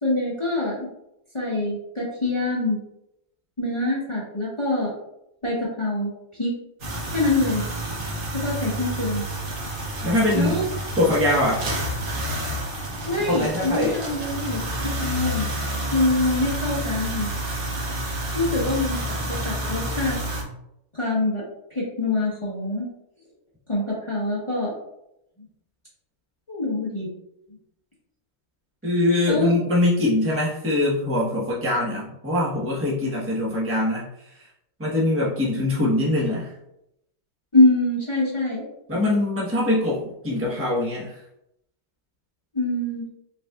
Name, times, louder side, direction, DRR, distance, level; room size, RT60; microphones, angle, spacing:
voice 1, 0.0-0.9 1.3-2.8 3.6-4.9 5.4-6.5 7.1-7.6 8.3-9.2 10.3-10.6 13.1-15.5 15.9-17.3 18.3-19.0 19.3-20.2 20.9-21.4 21.7-22.9 23.7-24.7 26.5-27.1 29.3-29.6 37.5-38.6 42.5-43.0, left 2 dB, 25° left, -6 dB, 0.7 m, -24 dB
sound 1, 6.8-20.4, right 1 dB, 45° right, 0.9 m, -29 dB
voice 2, 10.0-10.6 11.0-11.6 13.2-14.0 28.8-34.5 34.8-36.5 38.9-41.2, left 1 dB, 15° right, -7 dB, 0.4 m, -23 dB
5.4 x 4.1 x 2.4 m, 0.81 s
omnidirectional pair, 2.4 m